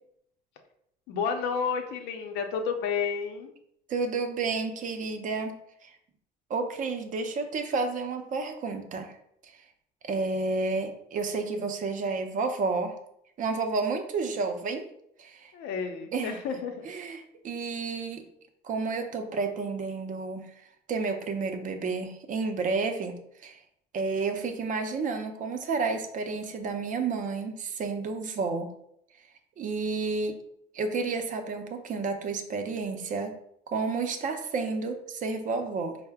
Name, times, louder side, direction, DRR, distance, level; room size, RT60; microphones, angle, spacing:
voice 1, 1.1-3.5 15.5-16.9, left 6 dB, 85° left, 5 dB, 0.6 m, -31 dB
voice 2, 3.9-5.9 6.5-9.1 9.4-9.5 10.0-13.0 13.4-14.9 15.2-15.5 16.1-16.3 16.9-18.2 18.6-20.5 20.9-23.6 23.9-28.7 29.6-30.4 30.7-33.3 33.7-36.0, right 4 dB, 50° right, 6 dB, 0.6 m, -31 dB
4.5 x 2.1 x 3.4 m, 0.73 s
cardioid pair, 110°, 17 cm